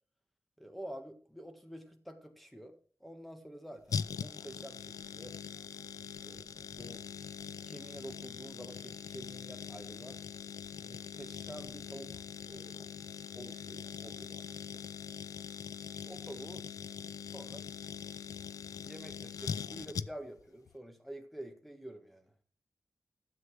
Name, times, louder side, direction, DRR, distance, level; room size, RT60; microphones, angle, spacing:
voice 1, 0.6-5.3 6.0-7.0 7.6-10.2 10.8-12.2 12.5-14.8 16.0-16.6 17.3-17.7 18.7-22.3, right 1 dB, ahead, 6 dB, 1.5 m, -48 dB
sound 1, 3.9-20.4 20.7-20.8, left 7 dB, 80° left, 0.4 m, -42 dB
13.0 x 7.8 x 4.7 m, 0.41 s
wide cardioid pair, 160°, 6 cm